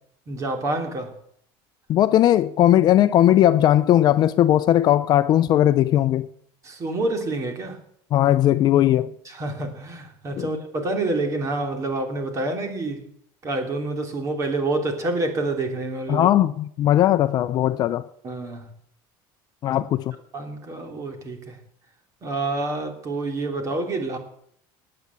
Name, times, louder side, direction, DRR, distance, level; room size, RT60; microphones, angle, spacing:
voice 1, 0.3-1.1 6.6-7.8 9.2-13.1 13.4-16.3 18.2-18.7 19.7-19.8 20.3-21.6 22.2-24.2, right 2 dB, 30° right, 3.1 m, -28 dB
voice 2, 1.9-6.3 8.1-9.1 10.4-10.5 16.1-18.1 19.6-20.1, left 12 dB, 40° left, 0.7 m, -18 dB
19.0 x 8.8 x 8.2 m
cardioid pair, 150°, 10 cm